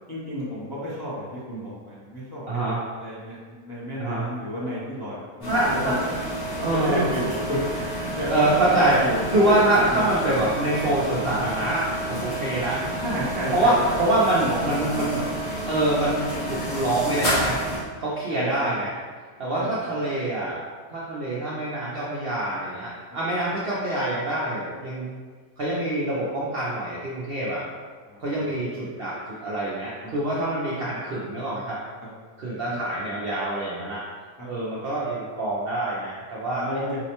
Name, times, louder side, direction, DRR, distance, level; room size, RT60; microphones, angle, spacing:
voice 1, 0.1-6.0 6.5-10.1 13.0-13.9 14.4-15.3 18.3-18.7 19.5-19.9 28.1-28.5 30.0-30.1 32.7-32.8 34.4-34.5 36.5-37.0, equal, 35° left, -10 dB, 0.4 m, -32 dB
voice 2, 2.5-2.8 4.0-4.2 5.5-5.9 6.6-7.1 8.3-9.0 9.3-12.8 13.5-15.3 15.7-17.6 18.0-18.9 19.4-20.6 20.9-25.1 25.6-27.6 28.2-31.8 32.4-34.0 34.5-36.8, right 1 dB, 65° right, -7 dB, 0.6 m, -25 dB
sound 1, 5.4-17.8, right 1 dB, 80° left, 2.0 m, -30 dB
4.6 x 2.1 x 2.9 m, 1.6 s
omnidirectional pair, 1.6 m